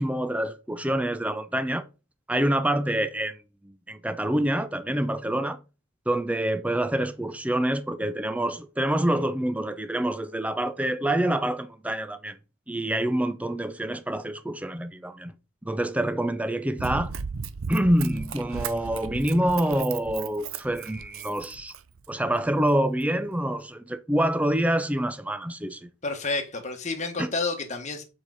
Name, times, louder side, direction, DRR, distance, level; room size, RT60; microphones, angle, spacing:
voice 1, 0.0-1.9 2.3-5.6 6.1-12.4 12.7-15.3 15.6-17.1 17.7-21.7 22.1-25.9 27.2-27.3, right 1 dB, 5° right, 0.5 m, -26 dB
Run, 16.8-22.1 22.6-22.7, right 5 dB, 70° right, 0.6 m, -36 dB
voice 2, 26.0-28.0, left 3 dB, 35° left, 1.5 m, -30 dB
7.2 x 4.8 x 4.0 m
head